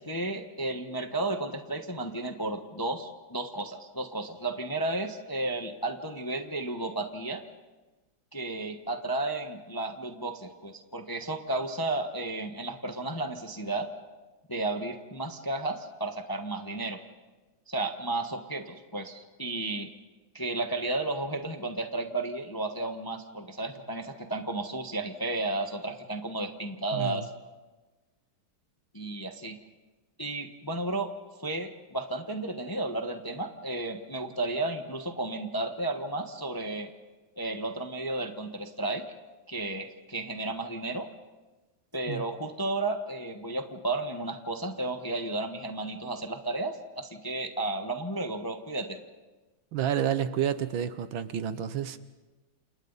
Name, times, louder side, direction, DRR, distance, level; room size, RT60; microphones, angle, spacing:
voice 1, 0.0-7.4 8.3-13.9 14.5-17.0 17.7-19.9 20.3-27.3 28.9-29.6 30.2-31.1 31.4-36.9 37.4-39.1 39.5-41.1 41.9-49.0, right 2 dB, 15° left, 0.9 m, -33 dB
voice 2, 26.9-27.3 42.1-42.2 49.7-52.0, right 9 dB, 70° right, 1.7 m, -30 dB
29.0 x 28.5 x 4.1 m
omnidirectional pair, 2.3 m